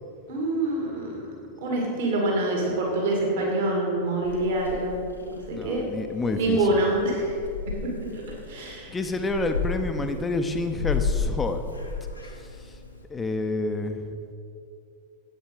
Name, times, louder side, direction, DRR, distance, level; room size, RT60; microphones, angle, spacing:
voice 1, 0.3-1.2 1.6-5.0 5.3-5.8 6.3-7.3 8.1-8.2 8.5-9.0, right 2 dB, 55° right, -2 dB, 2.1 m, -25 dB
Purr / Meow, 4.2-13.0, left 5 dB, 85° left, 1.1 m, -34 dB
voice 2, 5.5-6.6 8.9-11.6 13.1-14.0, left 2 dB, 15° left, 6 dB, 0.6 m, -28 dB
10.5 x 8.4 x 4.8 m, 2.5 s
figure-of-eight pair, 90°, 0 cm